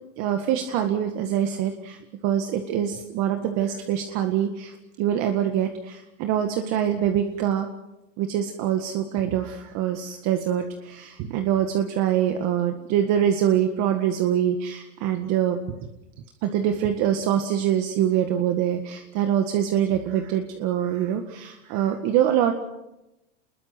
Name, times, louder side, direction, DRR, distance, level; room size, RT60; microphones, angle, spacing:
voice 1, 0.2-7.7 8.2-15.9 16.4-22.5, right 10 dB, 50° right, 5 dB, 1.9 m, -24 dB
27.0 x 21.0 x 6.1 m, 0.94 s
supercardioid pair, 140°, 37 cm